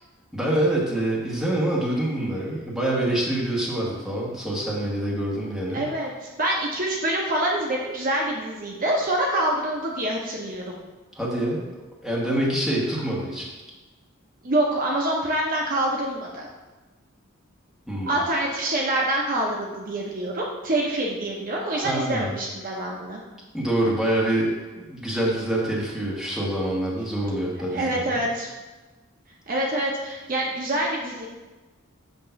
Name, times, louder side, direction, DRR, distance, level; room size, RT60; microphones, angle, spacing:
voice 1, 0.3-5.9 11.2-11.6 12.0-13.5 17.9-18.2 21.7-22.3 23.5-28.2, right 1 dB, ahead, -5 dB, 1.4 m, -26 dB
voice 2, 5.7-10.8 14.4-16.5 18.1-23.2 27.7-28.5 29.5-31.3, right 1 dB, 40° right, -2 dB, 0.8 m, -26 dB
8.0 x 3.0 x 5.7 m, 1.2 s
head